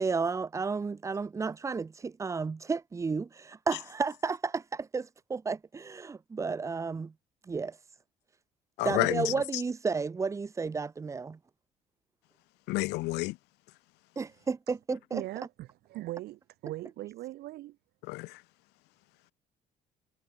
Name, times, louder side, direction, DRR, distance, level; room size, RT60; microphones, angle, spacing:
voice 1, 0.0-7.1 7.5-7.8 8.8-11.4 14.2-15.2, right 4 dB, 20° right, 0.4 m, -32 dB
voice 2, 8.8-9.3 12.7-13.4 18.1-18.4, left 22 dB, 90° left, 0.6 m, -30 dB
voice 3, 15.1-17.8, right 16 dB, 70° right, 0.6 m, -40 dB
cardioid pair, 110°, 17 cm